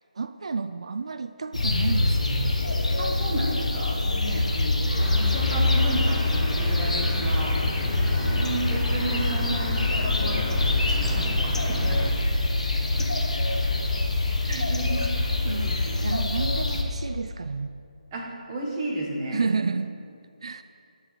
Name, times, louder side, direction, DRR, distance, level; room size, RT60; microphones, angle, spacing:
voice 1, 0.2-2.6 14.5-14.9 15.5-15.7 16.0-17.7 19.3-20.0 20.4-20.6, right 4 dB, 50° right, 10 dB, 0.3 m, -30 dB
sound 1, 1.5-16.8, left 2 dB, 60° left, 1.3 m, -25 dB
voice 2, 3.0-7.6 8.1-11.3 11.7-12.0 12.7-13.1 14.4-16.0 18.1-19.4, right 1 dB, 20° right, -3 dB, 1.6 m, -33 dB
sound 2, 5.0-12.1, equal, ahead, 0.8 m, -35 dB
10.5 x 7.2 x 5.9 m, 2.4 s
figure-of-eight pair, 150°, 4 cm